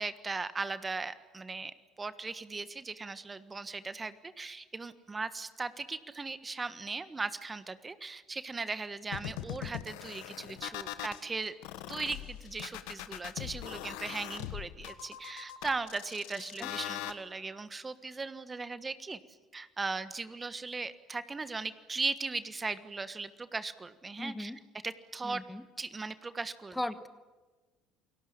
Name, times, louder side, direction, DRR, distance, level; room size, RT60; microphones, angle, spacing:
voice 1, 0.0-11.5 11.9-19.2 19.5-25.4 25.8-26.8, right 3 dB, 25° right, 13 dB, 1.4 m, -38 dB
sound 1, 9.1-11.2 11.6-17.1, left 14 dB, 75° left, 1.4 m, -41 dB
voice 2, 24.2-24.6 25.2-25.6 26.7-27.1, left 1 dB, 10° left, 13 dB, 1.3 m, -37 dB
28.5 x 19.0 x 8.7 m, 1.3 s
hypercardioid pair, 65°, 0 cm